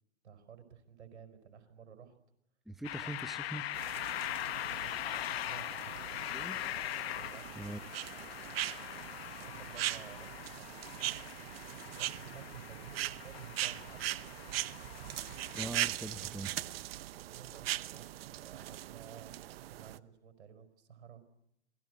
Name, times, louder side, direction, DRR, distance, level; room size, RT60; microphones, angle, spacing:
voice 1, 0.2-2.2 3.0-3.1 4.5-5.0 5.5-6.3 7.1-7.5 9.5-11.4 12.0-14.2 17.3-18.1 18.3-19.3 19.7-21.2, right 7 dB, 80° right, 9 dB, 5.2 m, -53 dB
voice 2, 2.7-3.7 6.3-6.6 7.6-7.8 8.2-8.3 15.5-16.5, right 1 dB, ahead, 10 dB, 0.9 m, -42 dB
sound 1, 2.8-15.6, left 13 dB, 60° left, 1.2 m, -41 dB
sound 2, 3.7-20.0, right 14 dB, 60° right, 1.0 m, -40 dB
28.0 x 20.5 x 7.9 m, 0.79 s
hypercardioid pair, 125°, 34 cm